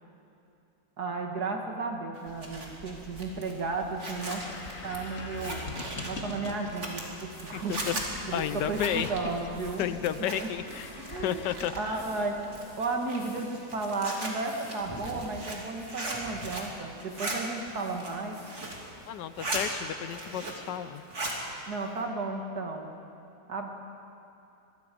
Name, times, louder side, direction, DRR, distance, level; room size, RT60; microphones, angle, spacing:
voice 1, 1.0-4.4 4.8-5.6 6.0-7.8 8.3-9.9 10.2-10.5 11.0-11.4 11.7-18.4 21.7-22.9 23.5-23.7, right 3 dB, 60° right, 3 dB, 2.3 m, -34 dB
Zipper (clothing), 2.2-10.7 11.0-12.0 12.4-16.7 17.0-17.4 17.8-18.8 19.2-19.6 20.0-20.7 21.0-21.4, right 2 dB, 40° right, 2.9 m, -38 dB
sound 1, 2.3-12.8, left 3 dB, 50° left, 2.0 m, -44 dB
sound 2, 7.3-20.9, equal, 15° left, 5.4 m, -49 dB
voice 2, 7.5-7.9 8.3-9.1 9.8-12.0 19.0-21.0, left 10 dB, 75° left, 13 dB, 1.3 m, -32 dB
24.5 x 21.0 x 5.2 m, 2.7 s
omnidirectional pair, 1.9 m